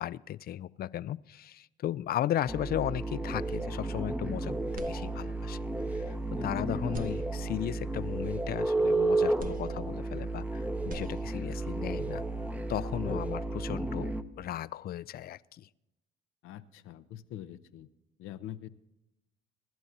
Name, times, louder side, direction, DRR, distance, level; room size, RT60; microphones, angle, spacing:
voice 1, 0.0-5.6 5.9-15.7, left 12 dB, 50° left, 0.4 m, -36 dB
sound 1, 2.5-14.2, right 2 dB, 5° right, 0.8 m, -32 dB
sound 2, 4.7-5.6 6.1-6.2 6.8-7.9 9.4-10.5 10.7-11.7, right 3 dB, 40° right, 1.0 m, -47 dB
voice 2, 16.4-17.9 18.2-18.7, left 11 dB, 75° left, 0.7 m, -43 dB
25.0 x 11.5 x 2.7 m
supercardioid pair, 90°, 21 cm